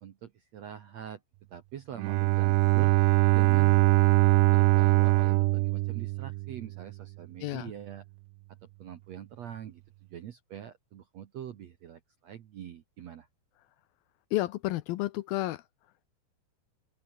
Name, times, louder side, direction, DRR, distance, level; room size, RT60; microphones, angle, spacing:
voice 1, 0.0-1.2 1.5-2.9 3.3-3.8 4.5-8.1 8.5-9.8 10.1-13.3, right 10 dB, 65° right, 1.7 m, -44 dB
Bowed string instrument, 2.0-6.8, right 21 dB, 85° right, 2.7 m, -22 dB
voice 2, 7.4-7.7 14.3-15.6, left 17 dB, 80° left, 2.3 m, -31 dB
open air
omnidirectional pair, 4.7 m